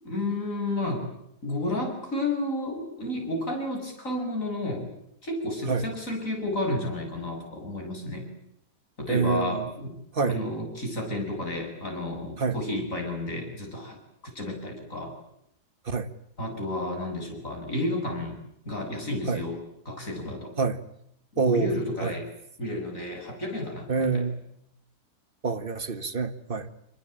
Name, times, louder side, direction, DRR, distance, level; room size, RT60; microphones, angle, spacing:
voice 1, 0.0-1.1 1.4-4.9 5.2-8.2 9.0-10.0 10.3-14.0 14.3-15.2 16.4-18.4 18.7-19.6 19.9-20.6 21.3-22.3 22.6-24.3, left 1 dB, 50° left, 3 dB, 7.8 m, -31 dB
voice 2, 9.1-9.6 10.1-10.4 12.4-12.6 15.8-16.1 19.3-19.4 20.6-20.8 21.4-21.7 22.0-22.1 23.9-24.4 25.4-26.7, right 5 dB, 35° right, 11 dB, 1.6 m, -26 dB
28.0 x 22.0 x 8.9 m, 0.75 s
omnidirectional pair, 1.8 m